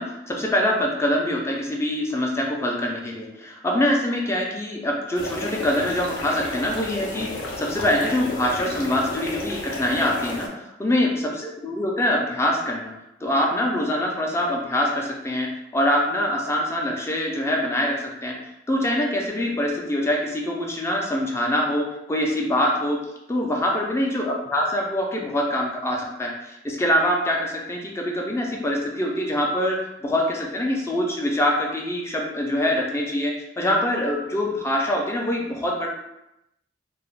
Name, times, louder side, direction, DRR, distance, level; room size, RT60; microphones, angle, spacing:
voice 1, 0.0-10.5 10.8-12.9 13.2-18.3 18.7-23.0 23.3-29.8 30.0-35.9, left 1 dB, 15° left, -1 dB, 0.3 m, -24 dB
sound 1, 5.1-10.5, left 1 dB, 75° left, 0.5 m, -32 dB
2.3 x 2.0 x 3.1 m, 0.88 s
head